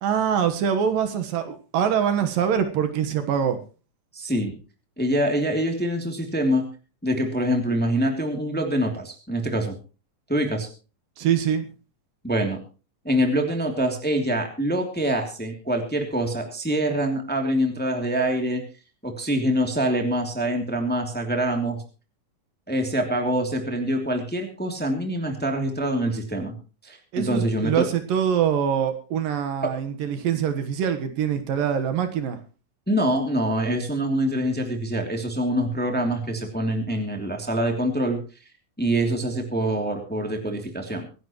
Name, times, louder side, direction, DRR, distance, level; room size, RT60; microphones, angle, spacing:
voice 1, 0.0-3.6 11.2-11.7 27.1-32.4, right 8 dB, 75° right, 8 dB, 3.0 m, -24 dB
voice 2, 4.1-4.6 5.0-6.6 7.0-9.8 10.3-10.7 12.2-12.6 13.0-18.6 19.0-21.8 22.7-26.5 26.8-27.9 29.6-29.7 32.9-38.2 38.8-41.1, right 1 dB, 5° left, 3 dB, 2.2 m, -25 dB
25.0 x 11.0 x 3.1 m, 0.35 s
omnidirectional pair, 4.1 m